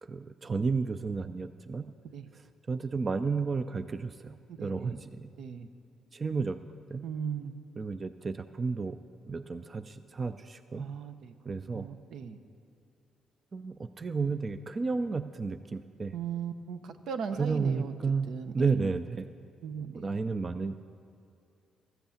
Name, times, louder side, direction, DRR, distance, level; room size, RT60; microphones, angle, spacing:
voice 1, 0.0-1.9 2.3-2.4 2.7-5.3 6.1-6.6 6.9-7.0 7.8-9.0 9.3-10.9 11.5-11.9 13.5-16.1 17.4-19.3 19.8-20.8, right 4 dB, 35° right, 10 dB, 0.4 m, -32 dB
voice 2, 4.5-5.0 5.4-5.7 7.0-7.5 10.7-11.4 11.7-12.4 16.1-17.9 18.3-18.9 19.6-20.1, right 7 dB, 75° right, 9 dB, 0.7 m, -38 dB
14.0 x 8.1 x 7.1 m, 2.5 s
cardioid pair, 90°, 0 cm